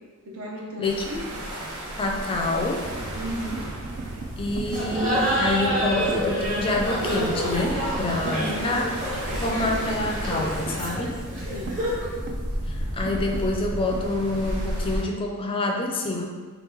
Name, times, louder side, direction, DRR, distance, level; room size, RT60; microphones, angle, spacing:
voice 1, 0.3-1.3 1.5-1.8 3.1-3.7 8.2-8.8 11.5-11.9, equal, 65° right, -1 dB, 0.7 m, -34 dB
sound 1, 0.8-15.0, equal, 90° right, 1.0 m, -34 dB
voice 2, 2.0-2.9 4.4-8.9 9.4-11.2 12.7-16.3, left 2 dB, 25° left, 1 dB, 0.4 m, -27 dB
sound 2, 2.8-14.6, right 2 dB, 50° right, 0.3 m, -37 dB
Laughter, 4.7-12.1, equal, 35° right, 1.1 m, -28 dB
3.5 x 3.1 x 3.5 m, 1.4 s
head